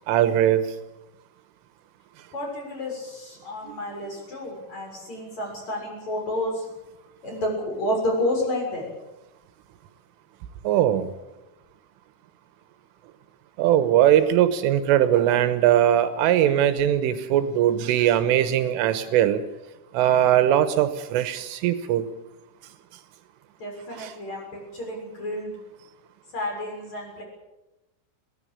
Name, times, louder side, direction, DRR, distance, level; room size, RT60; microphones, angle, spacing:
voice 1, 0.1-0.6 10.7-11.1 13.6-19.4 19.9-22.1 24.0-24.1, right 11 dB, 80° right, 11 dB, 3.6 m, -20 dB
voice 2, 2.3-6.6 7.2-8.9 23.6-25.5 26.3-27.2, left 1 dB, 35° left, 1 dB, 7.8 m, -30 dB
22.0 x 17.0 x 8.7 m, 0.98 s
omnidirectional pair, 5.8 m